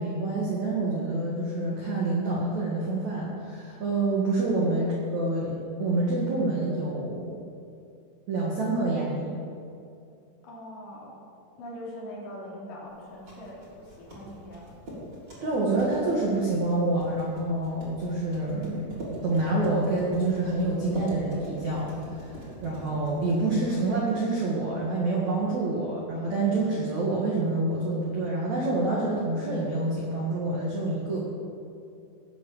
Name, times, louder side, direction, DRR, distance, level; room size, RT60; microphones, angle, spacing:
voice 1, 0.0-7.4 8.3-9.4 15.4-21.9 22.6-31.2, right 2 dB, 55° right, -4 dB, 2.1 m, -27 dB
voice 2, 10.4-11.2 11.6-14.7, left 1 dB, 45° left, -5 dB, 4.4 m, -42 dB
sound 1, 13.0-24.0, equal, 25° right, 3.8 m, -43 dB
17.0 x 8.1 x 7.2 m, 2.5 s
omnidirectional pair, 5.8 m